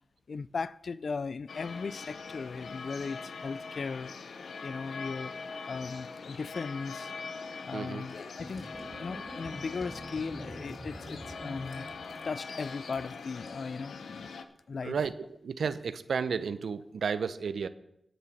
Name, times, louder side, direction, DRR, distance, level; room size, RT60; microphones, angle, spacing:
voice 1, 0.3-4.1 4.6-5.3 5.7-7.1 7.6-12.0 12.2-14.3 14.7-15.0, left 4 dB, 70° left, 0.4 m, -37 dB
sound 1, 1.5-14.4, left 4 dB, 85° left, 0.8 m, -42 dB
voice 2, 7.7-8.1 14.8-15.1 15.4-17.7, right 6 dB, 85° right, 0.6 m, -32 dB
sound 2, 7.8-13.5, equal, ahead, 4.4 m, -60 dB
sound 3, 8.4-12.7, right 1 dB, 20° right, 1.0 m, -46 dB
10.5 x 7.6 x 6.0 m
cardioid pair, 55°, 0 cm